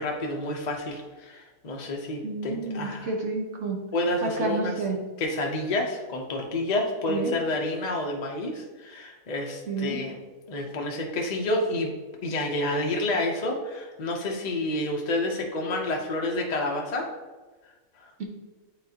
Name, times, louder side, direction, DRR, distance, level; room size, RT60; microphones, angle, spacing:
voice 1, 0.0-3.1 3.9-4.7 5.2-10.2 10.5-11.9 12.2-17.1, left 2 dB, 40° left, 0 dB, 0.8 m, -29 dB
voice 2, 2.2-3.8 4.2-5.0 7.1-7.3 9.7-10.0 18.2-18.3, right 3 dB, 60° right, 1 dB, 1.2 m, -30 dB
8.6 x 3.9 x 2.8 m, 1.2 s
omnidirectional pair, 1.4 m